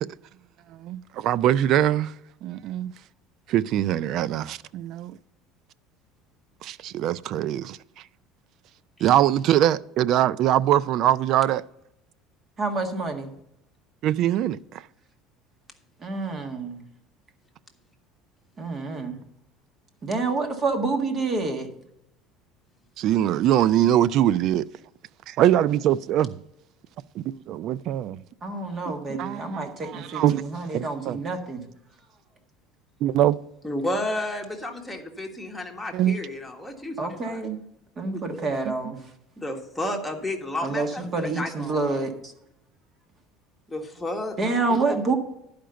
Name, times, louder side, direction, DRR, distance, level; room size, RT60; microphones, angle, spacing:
voice 1, 0.7-2.1 2.4-2.9 3.5-5.1 6.6-7.8 9.0-11.6 14.0-14.8 23.0-24.6 25.3-26.4 27.2-28.2 28.9-30.4 30.7-31.2 33.0-33.4 35.9-36.2 38.6-38.7, right 12 dB, 55° right, 0.3 m, -23 dB
voice 2, 12.6-13.3 16.0-16.8 18.6-19.2 20.0-21.7 28.4-31.6 37.0-37.6 38.0-39.0 40.6-42.1 44.4-45.2, right 3 dB, 30° right, 1.5 m, -28 dB
voice 3, 33.6-37.4 38.1-38.5 39.4-41.9 43.7-44.4 44.7-45.0, left 1 dB, 5° left, 1.4 m, -32 dB
11.0 x 5.1 x 6.8 m
cardioid pair, 130°, 0 cm